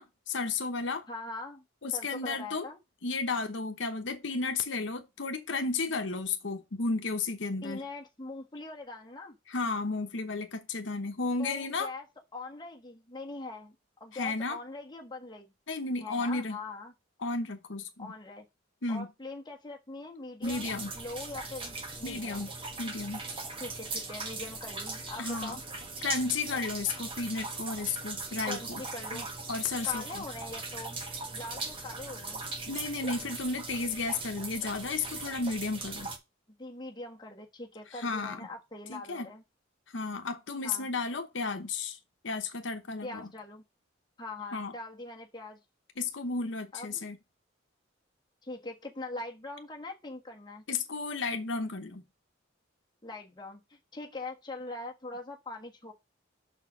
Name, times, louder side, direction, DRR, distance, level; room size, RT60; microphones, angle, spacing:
voice 1, 0.0-1.1 1.8-2.7 3.0-7.8 9.5-11.9 14.1-14.6 15.7-16.6 17.2-18.1 18.8-19.1 20.4-20.9 22.0-22.5 22.8-23.2 25.2-25.6 26.0-28.8 29.1-29.2 29.5-30.2 32.7-36.1 37.9-38.5 38.9-39.3 39.9-42.0 42.2-43.3 44.5-44.7 46.0-47.2 50.7-52.0, left 3 dB, 70° left, 0.9 m, -33 dB
voice 2, 1.1-1.6 1.9-2.8 7.6-9.4 11.4-12.0 12.3-13.7 14.0-15.5 16.0-16.9 18.0-18.4 18.9-22.5 23.6-25.6 28.5-29.3 29.8-31.0 31.3-32.4 36.6-39.4 40.6-40.9 43.0-43.6 44.2-45.6 46.7-47.0 48.4-50.6 53.0-55.9, left 2 dB, 20° left, 1.3 m, -42 dB
sound 1, 20.4-36.2, right 3 dB, 25° right, 1.2 m, -39 dB
6.2 x 4.5 x 5.9 m
head